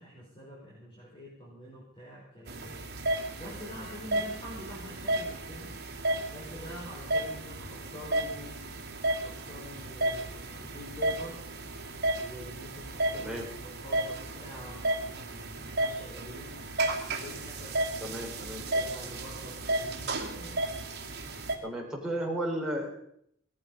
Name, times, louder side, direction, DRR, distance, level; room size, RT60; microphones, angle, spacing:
voice 1, 0.0-5.8 6.3-8.6 9.1-11.4 12.2-13.3 13.6-16.6 17.1-18.1 18.4-20.6, equal, 25° left, -4 dB, 4.5 m, -46 dB
sound 1, 2.5-21.6, right 1 dB, 55° right, 2.4 m, -33 dB
voice 2, 13.1-13.5 18.0-18.7 21.6-23.1, right 1 dB, 5° right, -3 dB, 4.4 m, -34 dB
19.0 x 14.0 x 5.4 m, 0.69 s
head